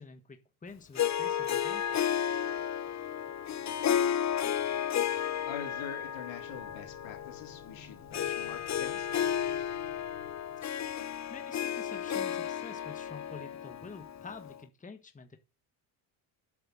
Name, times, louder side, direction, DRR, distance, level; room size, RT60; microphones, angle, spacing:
voice 1, 0.0-2.3 10.8-15.4, left 4 dB, 15° left, 1.4 m, -48 dB
Harp, 0.9-14.6, left 9 dB, 35° left, 0.8 m, -33 dB
voice 2, 5.5-9.3, left 9 dB, 75° left, 3.2 m, -44 dB
sound 1, 6.5-11.0, left 4 dB, 55° left, 3.5 m, -56 dB
8.3 x 6.7 x 7.7 m
cardioid pair, 95°, 48 cm